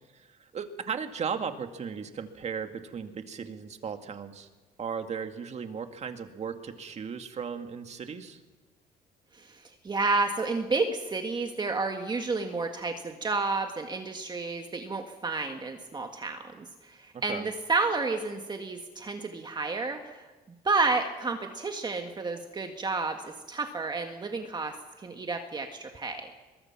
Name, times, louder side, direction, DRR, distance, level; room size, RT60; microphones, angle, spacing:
voice 1, 0.5-4.5 4.8-8.4 17.1-17.5, right 6 dB, 40° right, 7 dB, 2.0 m, -36 dB
voice 2, 9.3-20.2 20.6-26.3, right 3 dB, 25° right, 4 dB, 1.7 m, -31 dB
22.5 x 22.5 x 6.0 m, 1.2 s
cardioid pair, 110°, 17 cm